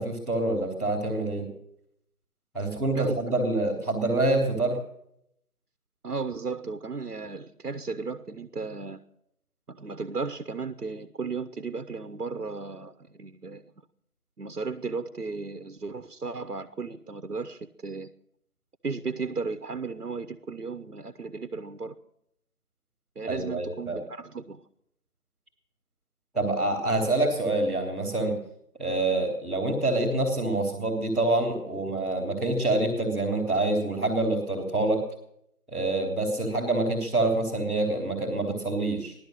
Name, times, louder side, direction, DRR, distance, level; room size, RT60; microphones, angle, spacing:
voice 1, 0.0-1.5 2.5-4.8 23.3-24.0 26.3-28.4 28.8-35.0 35.7-39.1, right 2 dB, ahead, -14 dB, 1.2 m, -26 dB
voice 2, 2.9-3.3 6.0-9.0 9.7-13.7 14.4-18.1 18.8-22.0 23.1-24.6, right 4 dB, 80° right, 10 dB, 1.2 m, -35 dB
16.0 x 12.5 x 6.6 m, 0.76 s
figure-of-eight pair, 165°, 45 cm